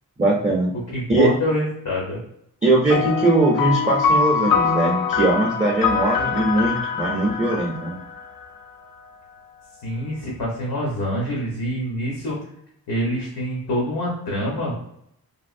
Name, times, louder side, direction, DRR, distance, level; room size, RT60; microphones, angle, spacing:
voice 1, 0.2-0.7 1.1-1.3 2.6-8.0, right 2 dB, 20° right, -2 dB, 0.4 m, -20 dB
voice 2, 0.9-2.2 9.8-12.4 12.9-14.7, left 1 dB, 85° left, -4 dB, 1.0 m, -26 dB
sound 1, 2.9-8.7, left 6 dB, 65° left, 0.5 m, -23 dB
3.3 x 2.5 x 2.5 m, 0.75 s
wide cardioid pair, 135°, 37 cm